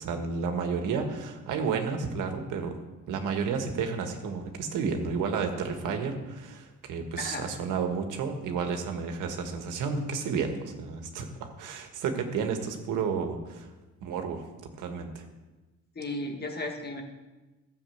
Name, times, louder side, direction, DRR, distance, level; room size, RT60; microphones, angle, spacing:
voice 1, 0.0-2.8 3.0-13.7 14.0-14.4 14.8-15.2, right 5 dB, 90° right, 5 dB, 1.7 m, -31 dB
voice 2, 7.2-7.5 16.0-17.0, left 1 dB, 30° left, 3 dB, 1.9 m, -35 dB
12.5 x 7.1 x 7.9 m, 1.2 s
cardioid pair, 90°, 30 cm